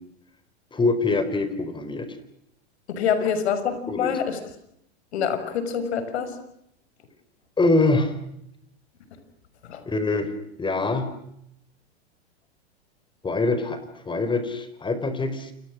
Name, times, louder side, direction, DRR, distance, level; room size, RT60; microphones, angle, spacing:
voice 1, 0.7-2.1 3.9-4.2 7.6-8.1 9.9-10.3 10.6-11.1 13.2-13.8 14.0-15.5, left 3 dB, 15° left, 11 dB, 4.6 m, -24 dB
voice 2, 2.9-4.4 5.1-6.3 9.7-9.8, left 7 dB, 70° left, 11 dB, 6.0 m, -26 dB
29.5 x 27.5 x 6.3 m, 0.77 s
hypercardioid pair, 115°, 34 cm